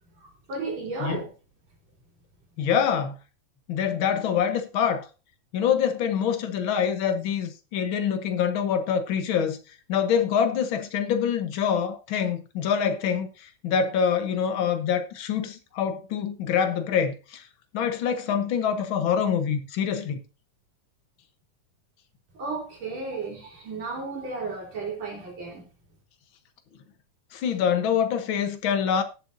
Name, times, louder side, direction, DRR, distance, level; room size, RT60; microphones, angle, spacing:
voice 1, 0.2-1.3 22.3-25.6, right 3 dB, 55° right, 4.2 m, -34 dB
voice 2, 2.6-3.1 3.7-5.1 5.5-9.6 9.9-17.5 17.7-20.2 27.3-29.0, left 7 dB, 70° left, 1.2 m, -25 dB
19.0 x 7.6 x 2.6 m
omnidirectional pair, 3.7 m